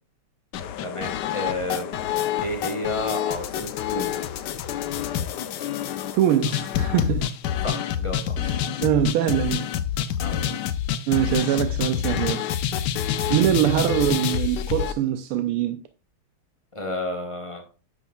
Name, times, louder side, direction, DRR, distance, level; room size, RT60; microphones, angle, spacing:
sound 1, 0.5-14.9, left 10 dB, 70° left, 1.0 m, -27 dB
voice 1, 0.8-1.9 2.4-4.2 5.5-5.6 7.6-8.4 10.2-10.5 13.6-13.8 16.7-17.6, left 1 dB, 25° left, 0.8 m, -31 dB
voice 2, 6.1-7.3 8.4-9.6 11.1-12.5 13.3-15.8, right 11 dB, 90° right, 1.5 m, -23 dB
9.3 x 6.2 x 2.3 m
omnidirectional pair, 2.3 m